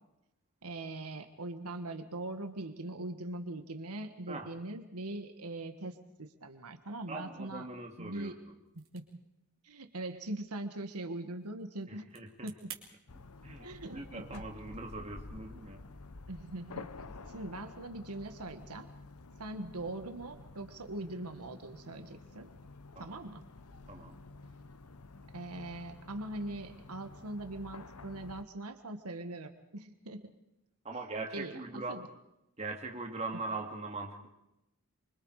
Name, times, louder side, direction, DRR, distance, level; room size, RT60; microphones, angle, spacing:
voice 1, 0.6-7.7 8.0-8.4 8.9-9.0 9.6-12.1 12.4-12.7 13.6-14.4 16.3-16.9 17.3-18.9 19.4-22.5 23.0-23.4 25.3-30.3 31.3-32.1 33.3-33.4, right 2 dB, 90° right, 7 dB, 1.6 m, -41 dB
voice 2, 7.1-8.4 11.9-12.5 13.4-13.7 13.9-15.8 23.0-23.2 23.9-24.2 30.8-32.0 32.6-34.3, right 3 dB, 30° right, 2 dB, 2.5 m, -41 dB
sound 1, 8.6-12.8, right 10 dB, 60° right, 3.6 m, -54 dB
sound 2, 13.1-28.4, left 3 dB, 80° left, 1.0 m, -50 dB
25.5 x 25.0 x 4.9 m, 0.88 s
head